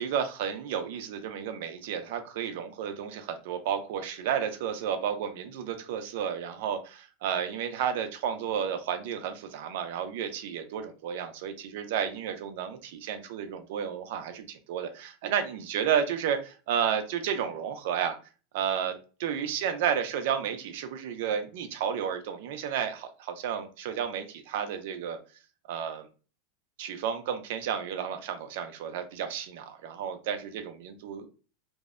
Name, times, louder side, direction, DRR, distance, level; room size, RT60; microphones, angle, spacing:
voice 1, 0.0-18.2 18.5-25.2 25.7-26.1 26.8-31.3, right 8 dB, 65° right, 8 dB, 0.4 m, -32 dB
2.6 x 2.1 x 2.3 m, 0.35 s
supercardioid pair, 165°, 0 cm